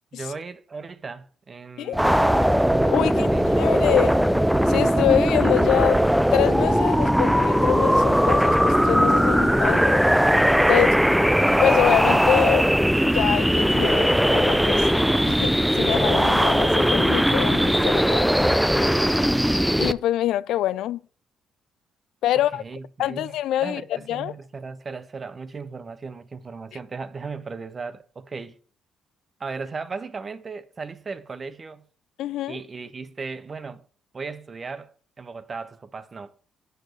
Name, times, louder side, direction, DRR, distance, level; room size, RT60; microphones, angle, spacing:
voice 1, 0.1-2.4 3.0-3.5 10.6-11.0 22.3-23.3 23.6-28.6 29.4-31.8 32.5-33.8 34.1-34.9 35.2-36.3, right 4 dB, 35° right, 0.8 m, -36 dB
sound 1, 1.9-19.9, equal, ahead, 0.5 m, -19 dB
voice 2, 2.9-4.2 4.7-6.0 6.3-10.0 10.7-10.9 11.6-12.7 13.0-14.9 15.3-18.3 19.8-21.0 22.2-22.6 23.0-23.8 24.1-24.3 32.2-32.6, left 12 dB, 85° left, 0.3 m, -25 dB
6.6 x 6.3 x 6.5 m
cardioid pair, 90°, 0 cm